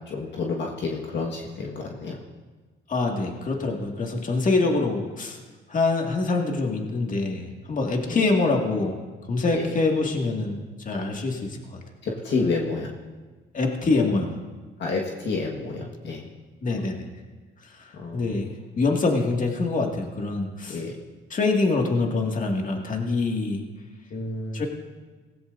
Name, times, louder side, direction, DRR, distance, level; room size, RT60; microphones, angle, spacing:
voice 1, 0.1-2.2 8.1-8.3 9.5-9.7 12.0-12.9 14.8-16.3 17.9-18.3 20.7-20.9 24.1-24.7, left 3 dB, 65° left, -1 dB, 1.7 m, -29 dB
voice 2, 2.9-5.4 5.7-8.9 9.3-10.6 10.9-11.8 13.5-14.3 16.6-17.1 18.1-18.5 18.8-20.8 21.3-23.6 24.5-24.7, left 3 dB, 40° left, 1 dB, 2.2 m, -25 dB
18.0 x 15.5 x 2.7 m, 1.4 s
cardioid pair, 90°, 20 cm